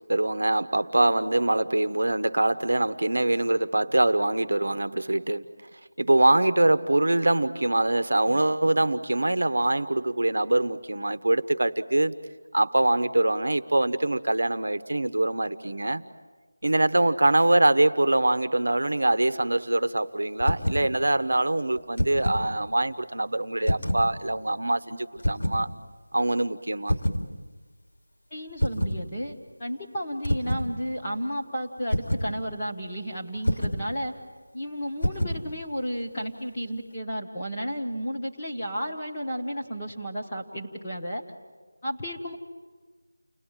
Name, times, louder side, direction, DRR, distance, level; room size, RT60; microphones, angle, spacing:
voice 1, 0.1-5.4 5.7-12.1 12.5-16.0 16.6-25.7 26.1-27.0, right 2 dB, 60° right, 1.1 m, -24 dB
sound 1, 20.4-20.9 21.8-22.5 23.6-24.1 25.2-25.6 26.9-27.3 28.6-29.0 30.2-30.7 31.9-32.3 33.4-33.8 35.0-35.4, equal, 75° left, 3.0 m, -26 dB
voice 2, 28.3-34.1 34.5-41.2 41.8-42.4, equal, 10° left, 1.4 m, -33 dB
30.0 x 20.5 x 9.2 m
figure-of-eight pair, 180°, 0 cm